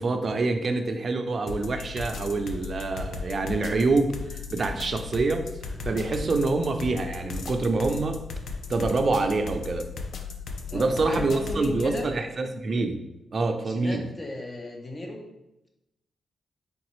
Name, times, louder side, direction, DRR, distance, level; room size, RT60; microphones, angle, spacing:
voice 1, 0.0-5.5 5.8-8.2 8.7-9.9 10.7-13.0 13.3-14.0, right 3 dB, 45° right, 6 dB, 0.4 m, -26 dB
sound 1, 1.5-12.1, left 5 dB, 65° left, 0.4 m, -36 dB
voice 2, 10.7-12.1 13.6-15.2, left 2 dB, 30° left, 2 dB, 0.7 m, -35 dB
3.9 x 3.5 x 3.0 m, 0.91 s
cardioid pair, 95°, 0 cm